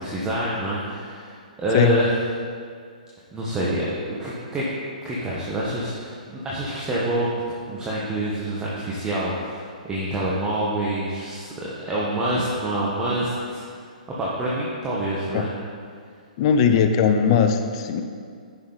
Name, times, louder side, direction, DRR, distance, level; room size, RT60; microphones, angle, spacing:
voice 1, 0.0-2.1 3.3-4.7 5.0-7.4 7.7-11.5 11.8-13.6 14.2-15.5, right 1 dB, 15° right, -7 dB, 1.3 m, -26 dB
voice 2, 16.4-18.0, left 7 dB, 40° left, 6 dB, 0.7 m, -19 dB
10.5 x 6.0 x 4.1 m, 2.1 s
hypercardioid pair, 135°, 4 cm